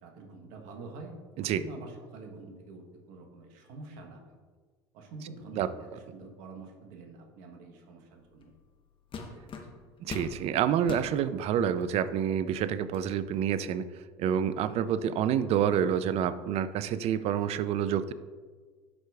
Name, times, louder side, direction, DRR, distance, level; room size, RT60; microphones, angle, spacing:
voice 1, 0.0-1.1 1.5-4.3 4.9-8.5 9.3-9.7, right 3 dB, 65° right, 3 dB, 1.1 m, -47 dB
sound 1, 8.4-8.6 9.1-10.4 10.8-11.1 11.8-11.9 12.4-13.1, left 4 dB, 40° left, 1.0 m, -41 dB
voice 2, 10.0-13.9 14.2-18.1, right 9 dB, 50° right, 14 dB, 0.4 m, -28 dB
11.5 x 4.6 x 2.4 m, 1.5 s
hypercardioid pair, 70°, 14 cm